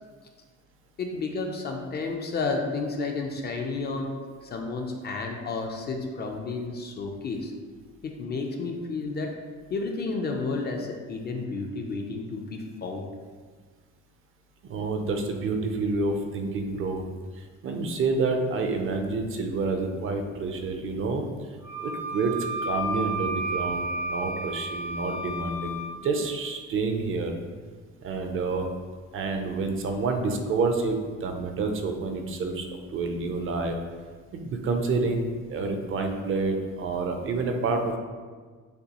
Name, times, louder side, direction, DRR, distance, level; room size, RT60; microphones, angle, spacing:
voice 1, 1.0-4.1 4.4-7.5 8.0-9.4 9.7-13.1, left 3 dB, 35° left, 3 dB, 0.4 m, -31 dB
voice 2, 14.6-17.0 17.3-21.3 21.8-22.3 22.6-27.3 28.0-28.7 29.1-33.8 34.3-38.0, right 3 dB, 45° right, 4 dB, 0.5 m, -28 dB
Wind instrument woodwind instrument, 21.6-25.9, right 1 dB, 70° left, 0.9 m, -32 dB
6.6 x 2.6 x 2.9 m, 1.5 s
cardioid pair, 155°, 30 cm